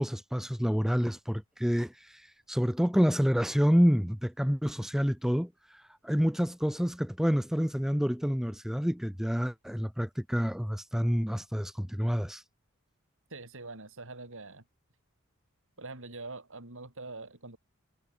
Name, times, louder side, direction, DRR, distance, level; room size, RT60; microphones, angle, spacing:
voice 1, 0.0-5.5 6.0-12.4, equal, ahead, 1.1 m, -28 dB
voice 2, 13.3-14.6 15.8-17.6, right 3 dB, 65° right, 5.9 m, -44 dB
head